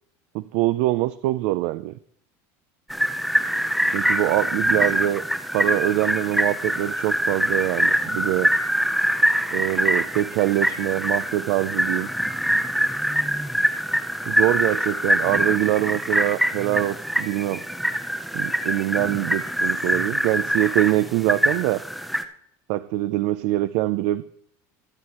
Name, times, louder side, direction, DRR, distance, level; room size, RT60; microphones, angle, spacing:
voice 1, 0.3-1.9 3.9-5.2 5.5-8.5 9.5-12.1 14.3-17.6 18.3-21.8 22.7-24.3, right 16 dB, 60° right, 13 dB, 0.4 m, -24 dB
sound 1, 2.9-22.2, equal, ahead, 0.5 m, -24 dB
22.5 x 8.0 x 2.9 m, 0.68 s
cardioid pair, 175°, 9 cm